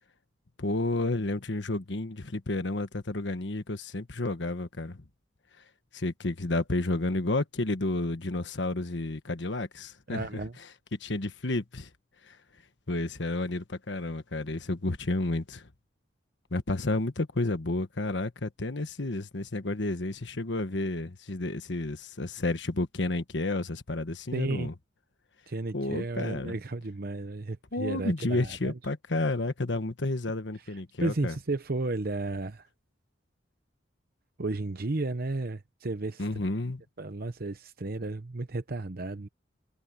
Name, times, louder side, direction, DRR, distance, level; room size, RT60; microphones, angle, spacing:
voice 1, 0.6-5.0 5.9-10.3 11.0-11.9 12.3-12.4 12.9-15.7 16.5-24.7 25.7-26.5 27.7-31.3 36.2-36.8, left 2 dB, 75° left, 1.3 m, -31 dB
voice 2, 10.1-10.6 24.3-24.7 25.5-28.8 30.6-32.7 34.4-36.3 37.0-39.3, right 2 dB, 55° right, 0.9 m, -33 dB
head